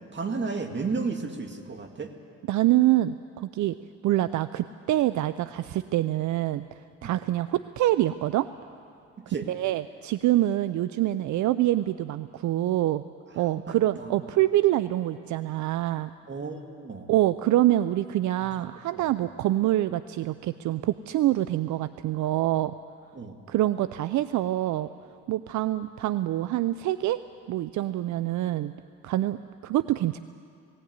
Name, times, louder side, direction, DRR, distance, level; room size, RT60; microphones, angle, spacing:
voice 1, 0.1-2.1 7.0-7.1 9.2-9.5 13.5-14.1 16.3-17.1 18.4-18.5 19.0-19.1 23.2-23.4, right 4 dB, 40° right, 5 dB, 2.2 m, -33 dB
voice 2, 2.5-3.8 4.0-6.6 7.0-8.5 9.5-13.0 13.4-16.1 17.1-22.7 23.5-24.9 25.3-27.2 27.5-28.7 29.0-29.4 29.6-30.2, right 14 dB, 75° right, 14 dB, 0.5 m, -25 dB
18.5 x 17.0 x 9.5 m, 2.4 s
cardioid pair, 90°, 30 cm